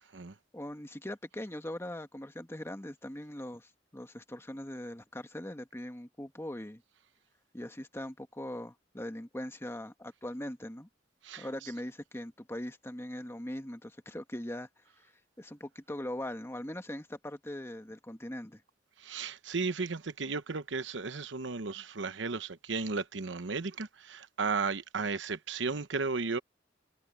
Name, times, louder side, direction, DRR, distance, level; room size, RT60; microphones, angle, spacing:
voice 1, 0.5-6.8 7.5-10.9 11.4-14.7 15.0-15.1 15.4-18.6, left 1 dB, 15° left, 1.4 m, -41 dB
voice 2, 19.0-26.4, right 4 dB, 75° right, 1.0 m, -34 dB
head